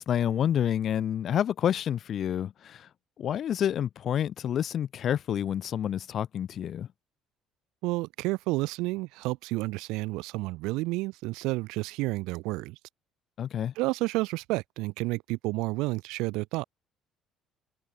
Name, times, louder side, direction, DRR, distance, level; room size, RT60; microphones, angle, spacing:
voice 1, 0.0-2.9 3.2-6.9 13.4-13.7, left 9 dB, 55° left, 2.5 m, -28 dB
voice 2, 7.8-12.8 13.8-16.6, right 22 dB, 70° right, 2.5 m, -30 dB
hypercardioid pair, 55°, 0 cm